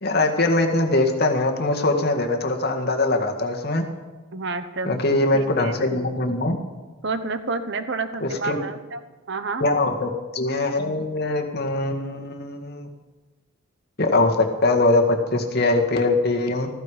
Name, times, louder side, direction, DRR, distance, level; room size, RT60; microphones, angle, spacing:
voice 1, 0.0-3.8 4.8-6.6 8.2-8.6 9.6-12.9 14.0-16.7, left 2 dB, 50° left, 2 dB, 1.9 m, -22 dB
voice 2, 4.3-5.0 5.3-5.8 7.0-9.0 9.3-9.6, right 3 dB, 55° right, 10 dB, 1.0 m, -29 dB
15.0 x 14.5 x 5.1 m, 1.3 s
head